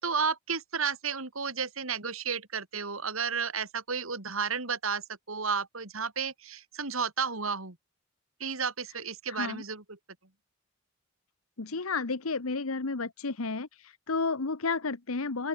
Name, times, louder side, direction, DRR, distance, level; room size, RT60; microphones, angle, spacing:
voice 1, 0.0-7.8 8.4-9.8, right 5 dB, 75° right, 3.2 m, -32 dB
voice 2, 9.3-9.6 11.6-15.5, left 4 dB, 80° left, 1.2 m, -32 dB
open air
head